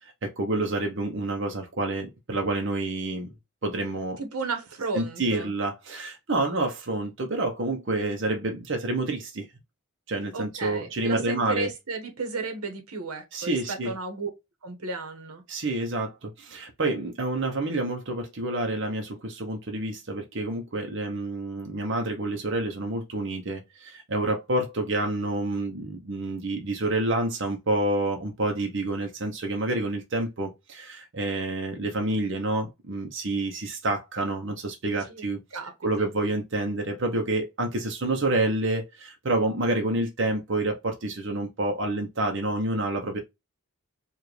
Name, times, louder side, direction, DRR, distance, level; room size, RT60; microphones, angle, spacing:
voice 1, 0.0-3.3 3.6-4.2 4.9-9.5 10.1-11.7 13.3-13.9 15.5-35.4 35.8-43.2, right 2 dB, 55° right, 0.8 m, -28 dB
voice 2, 4.2-5.5 10.3-14.3 14.6-15.4 35.1-35.7 36.0-36.1, right 4 dB, 90° right, 1.2 m, -34 dB
4.8 x 2.5 x 3.1 m
head